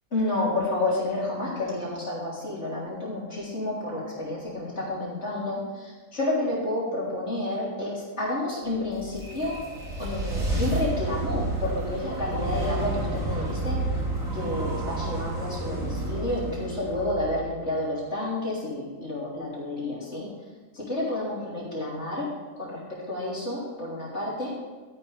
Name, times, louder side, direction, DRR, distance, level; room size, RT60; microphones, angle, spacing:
voice 1, 0.1-9.6 10.0-13.8 14.3-20.3 20.7-22.8 23.1-24.5, left 2 dB, 50° left, -6 dB, 3.9 m, -30 dB
sound 1, 8.8-18.0, right 2 dB, 70° right, 2.8 m, -30 dB
13.0 x 10.5 x 3.5 m, 1.3 s
omnidirectional pair, 1.5 m